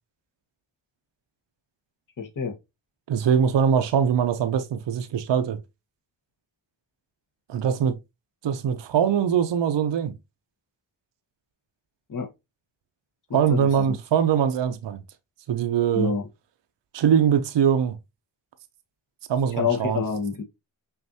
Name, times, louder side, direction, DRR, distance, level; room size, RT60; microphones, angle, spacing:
voice 1, 2.2-2.5 12.1-12.3 13.3-13.7 15.9-16.3 19.6-20.4, left 6 dB, 40° left, 1.0 m, -27 dB
voice 2, 3.1-5.6 7.5-7.9 8.4-10.1 13.3-15.0 15.5-16.1 16.9-18.0 19.3-20.0, right 8 dB, 65° right, 0.7 m, -22 dB
5.5 x 2.6 x 2.7 m
cardioid pair, 50°, 47 cm